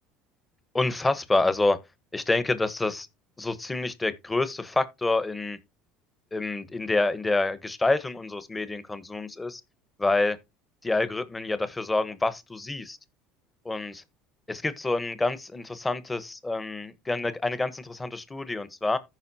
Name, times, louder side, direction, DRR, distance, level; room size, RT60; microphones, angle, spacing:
voice 1, 0.7-1.8 2.1-3.1 3.4-5.6 6.3-9.6 10.0-10.4 10.8-13.0 13.6-14.0 14.5-19.0, left 2 dB, 15° left, 1.2 m, -27 dB
14.5 x 5.3 x 2.8 m
supercardioid pair, 85°, 0 cm